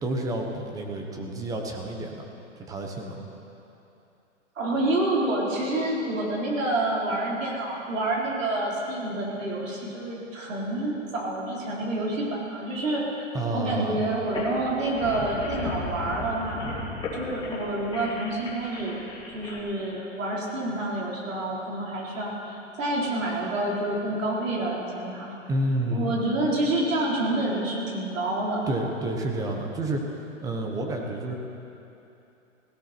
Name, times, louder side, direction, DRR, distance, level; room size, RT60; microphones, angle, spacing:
voice 1, 0.0-2.3 2.7-3.2 13.3-14.1 25.5-26.2 28.7-31.3, right 1 dB, 10° right, 2 dB, 1.0 m, -30 dB
voice 2, 4.6-13.3 13.5-16.8 17.1-19.0 19.3-25.4 25.9-28.6, right 2 dB, 90° right, -4 dB, 4.4 m, -28 dB
sound 1, 14.2-19.6, left 2 dB, 10° left, 1.9 m, -35 dB
17.5 x 16.5 x 4.5 m, 2.8 s
hypercardioid pair, 155°, 38 cm